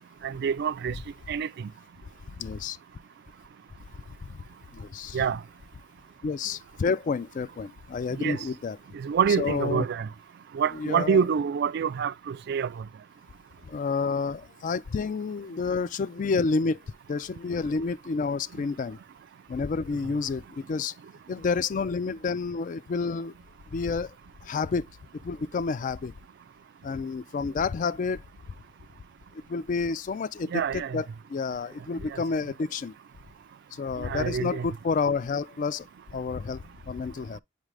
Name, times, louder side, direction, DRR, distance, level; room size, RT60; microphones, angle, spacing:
voice 1, 0.2-0.9 1.3-1.5 5.1-5.4 8.2-8.4 9.0-10.1 10.6-12.7 30.5-31.0 34.1-34.7, right 7 dB, 55° right, 0.3 m, -26 dB
voice 2, 2.4-2.8 4.2-4.3 4.7-5.2 6.2-8.8 9.4-9.9 10.7-11.2 13.7-16.8 17.1-19.0 19.5-20.9 21.3-23.3 23.7-24.1 24.4-24.8 25.2-26.1 26.8-28.2 29.3-32.9 33.7-35.9 36.1-37.4, left 4 dB, 40° left, 0.3 m, -29 dB
8.1 x 3.7 x 3.2 m
head